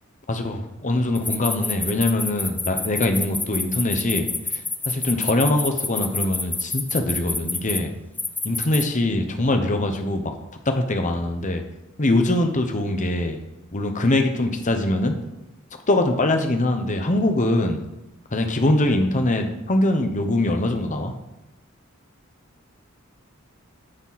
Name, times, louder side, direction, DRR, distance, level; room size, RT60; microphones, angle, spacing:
voice 1, 0.8-4.3 4.9-7.9 8.4-10.4 10.7-11.6 12.0-13.4 13.7-15.1 15.9-17.8 18.3-21.1, left 1 dB, 35° left, 5 dB, 1.0 m, -22 dB
sound 1, 1.2-7.8 8.2-8.8, left 3 dB, 10° left, 0.5 m, -27 dB
9.8 x 7.1 x 4.2 m, 0.94 s
head